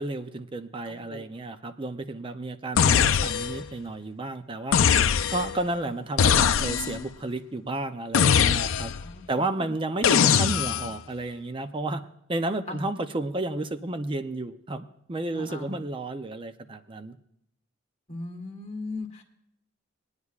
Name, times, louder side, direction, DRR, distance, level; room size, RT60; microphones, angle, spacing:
voice 1, 0.0-8.9 9.3-12.0 12.3-17.2, right 2 dB, 25° right, 10 dB, 0.5 m, -32 dB
voice 2, 0.9-1.3 5.8-5.9 9.0-9.2 12.7-12.8 15.3-15.8 18.1-19.2, left 2 dB, 35° left, 1 dB, 1.4 m, -38 dB
sound 1, 2.8-3.7 4.7-5.6 6.2-7.0 8.1-9.1 10.0-10.9, left 7 dB, 80° left, 0.5 m, -21 dB
21.5 x 9.6 x 2.4 m, 0.76 s
head